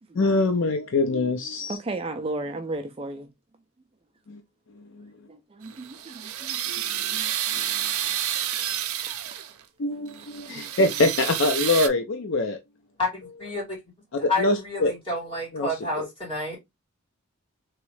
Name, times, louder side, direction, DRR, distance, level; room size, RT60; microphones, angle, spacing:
voice 1, 0.1-1.8 4.3-4.4 4.7-5.1 6.7-7.2 7.5-7.9 9.8-12.6 14.2-14.9 15.5-16.1, left 2 dB, 55° left, 0.5 m, -25 dB
voice 2, 1.7-3.3 5.3-6.7 7.0-7.6 10.5-10.7, right 2 dB, 25° right, 0.4 m, -35 dB
sound 1, 5.7-9.6 10.1-11.9, right 11 dB, 80° right, 0.6 m, -29 dB
voice 3, 13.0-13.6 14.3-16.6, left 2 dB, 25° left, 2.4 m, -29 dB
3.6 x 3.1 x 3.1 m
head